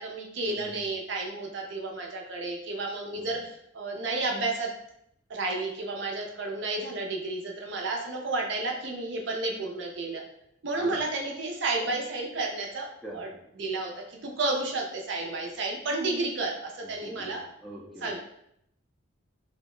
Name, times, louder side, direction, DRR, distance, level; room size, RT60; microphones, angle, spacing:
voice 1, 0.0-4.7 5.3-10.2 10.6-12.9 13.1-13.3 13.6-17.4 18.0-18.2, right 2 dB, 65° right, 0 dB, 0.5 m, -31 dB
voice 2, 13.0-13.3 17.0-18.1, equal, ahead, -5 dB, 0.4 m, -44 dB
2.7 x 2.1 x 3.1 m, 0.75 s
head